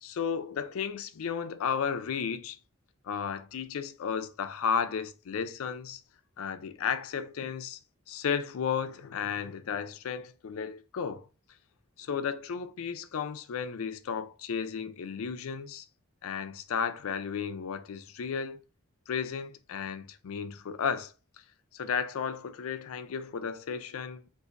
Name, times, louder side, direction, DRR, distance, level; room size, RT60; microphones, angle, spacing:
voice 1, 0.0-2.6 3.0-6.0 6.4-7.8 8.1-11.2 12.0-15.8 16.2-18.6 19.1-21.1 21.7-24.2, left 7 dB, 75° left, 0.4 m, -33 dB
3.9 x 2.5 x 2.4 m
head